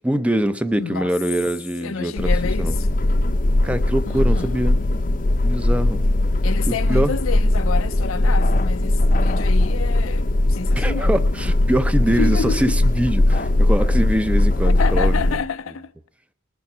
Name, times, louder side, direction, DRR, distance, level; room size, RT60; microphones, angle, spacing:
voice 1, 0.0-2.3 2.6-2.8 3.6-4.8 5.4-6.0 6.6-7.1 10.7-15.4, right 1 dB, 5° right, 0.5 m, -23 dB
voice 2, 0.8-1.1 1.8-2.9 4.1-4.6 6.4-11.1 12.2-12.8 14.6-15.9, left 5 dB, 85° left, 0.6 m, -29 dB
sound 1, 2.2-15.4, left 1 dB, 40° left, 0.6 m, -19 dB
20.0 x 6.9 x 6.0 m
head